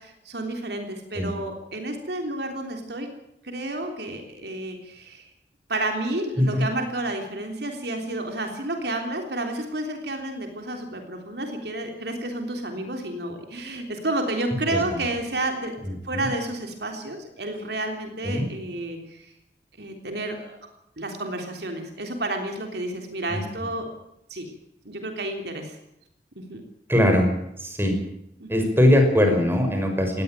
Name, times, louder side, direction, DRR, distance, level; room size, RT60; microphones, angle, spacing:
voice 1, 0.0-3.1 3.4-5.3 5.7-19.3 19.8-20.6 21.0-23.9 24.3-24.5 24.8-25.8 26.3-26.6 28.4-28.7, right 2 dB, 65° right, 4 dB, 3.5 m, -31 dB
voice 2, 26.9-27.3 27.6-27.9 28.5-30.2, left 1 dB, 15° right, 4 dB, 5.8 m, -21 dB
20.0 x 17.0 x 9.2 m, 0.80 s
head